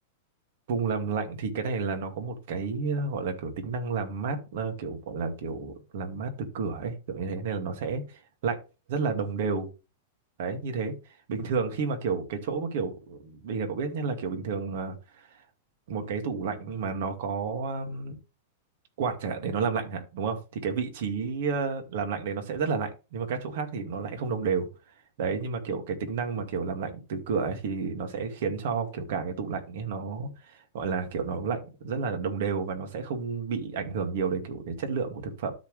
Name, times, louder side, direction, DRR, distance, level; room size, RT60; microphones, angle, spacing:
voice 1, 0.7-8.6 8.9-9.7 10.4-10.9 11.3-15.2 15.9-18.2 19.0-24.7 25.2-35.5, right 5 dB, 65° right, 5 dB, 2.3 m, -31 dB
13.0 x 4.4 x 3.3 m, 0.30 s
supercardioid pair, 145°, 0 cm